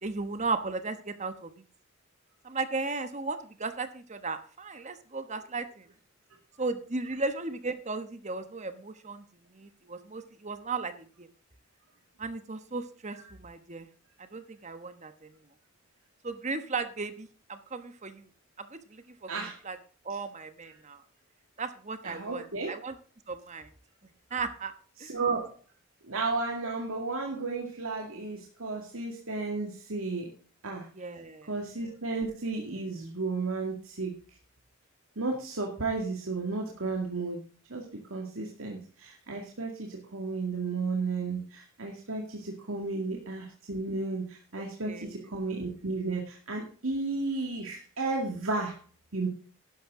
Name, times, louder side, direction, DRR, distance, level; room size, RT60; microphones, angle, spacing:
voice 1, 0.0-1.5 2.4-5.9 6.6-9.2 9.5-11.3 12.2-13.9 14.2-15.1 16.2-18.3 18.6-19.3 19.6-19.8 20.0-21.0 21.6-22.9 23.3-23.7 24.3-24.7 25.0-25.1 30.9-31.5 42.8-42.9 44.9-45.3, right 3 dB, 35° right, 10 dB, 1.1 m, -36 dB
voice 2, 22.0-22.8 25.0-25.5 26.0-30.3 30.6-30.9 31.5-34.2 35.2-37.4 37.7-48.8 49.1-49.3, right 3 dB, 85° right, 0 dB, 2.2 m, -33 dB
12.5 x 11.5 x 3.8 m, 0.38 s
head